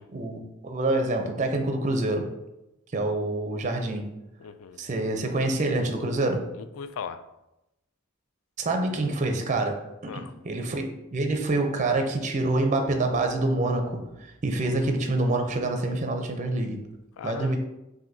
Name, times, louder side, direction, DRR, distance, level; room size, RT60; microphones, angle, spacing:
voice 1, 0.1-2.3 2.9-4.1 4.8-6.5 8.6-10.8 11.1-16.8 17.2-17.6, right 2 dB, 35° right, 4 dB, 0.5 m, -26 dB
voice 2, 4.4-4.8 6.5-7.2 10.1-10.3 17.2-17.6, left 6 dB, 80° left, 11 dB, 0.4 m, -38 dB
6.0 x 2.6 x 2.6 m, 0.91 s
head